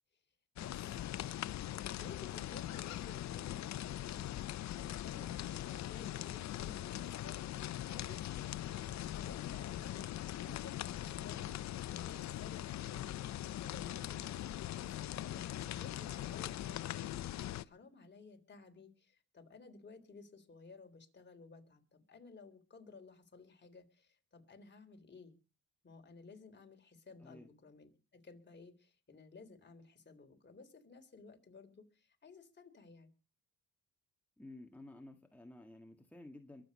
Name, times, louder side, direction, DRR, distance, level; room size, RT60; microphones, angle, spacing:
sound 1, 0.6-17.6, left 13 dB, 65° left, 0.7 m, -41 dB
voice 1, 0.6-0.9 1.9-4.3 4.7-7.4 7.9-11.6 11.9-13.2 13.6-25.4 25.8-33.1, left 4 dB, 35° left, 5 dB, 3.6 m, -56 dB
voice 2, 27.2-27.5 34.4-36.7, left 2 dB, 5° left, 3 dB, 1.7 m, -53 dB
22.5 x 8.3 x 5.3 m, 0.35 s
cardioid pair, 90°, 30 cm